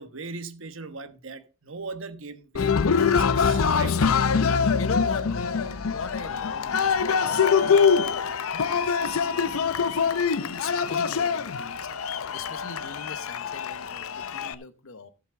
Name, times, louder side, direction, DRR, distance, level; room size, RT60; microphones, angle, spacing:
voice 1, 0.0-3.9 4.6-4.7, right 4 dB, 65° right, 1.1 m, -39 dB
Cheering, 2.5-14.5, left 6 dB, 85° left, 0.6 m, -24 dB
voice 2, 4.4-8.4 8.7-15.1, left 4 dB, 65° left, 1.1 m, -41 dB
14.5 x 7.3 x 3.7 m
head